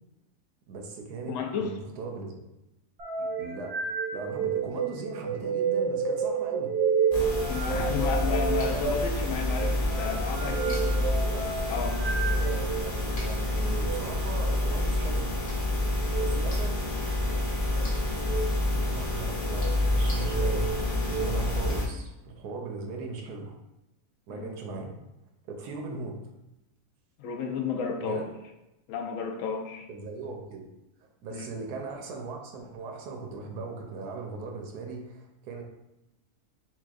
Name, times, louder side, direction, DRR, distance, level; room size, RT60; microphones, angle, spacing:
voice 1, 0.7-2.4 3.2-3.8 4.1-6.7 7.6-8.0 10.8-11.4 12.3-15.3 16.1-16.8 17.7-17.9 18.9-20.7 21.1-23.6 24.3-24.9 25.5-26.2 28.0-28.3 29.9-30.7 31.0-35.6, right 4 dB, 80° right, 2 dB, 1.2 m, -38 dB
voice 2, 1.3-1.8 7.4-10.9 11.7-12.0 24.3-24.5 27.2-28.2 28.9-29.8 31.3-31.5, left 6 dB, 70° left, 3 dB, 0.9 m, -32 dB
sound 1, 3.0-12.9 13.7-14.0 16.0-16.3 17.1-17.6 18.2-18.5 19.2-19.7 20.2-21.3, right 6 dB, 60° right, 0.8 m, -30 dB
sound 2, 7.1-21.9, left 1 dB, 40° left, 0.9 m, -28 dB
5.8 x 2.3 x 2.4 m, 0.92 s
omnidirectional pair, 1.6 m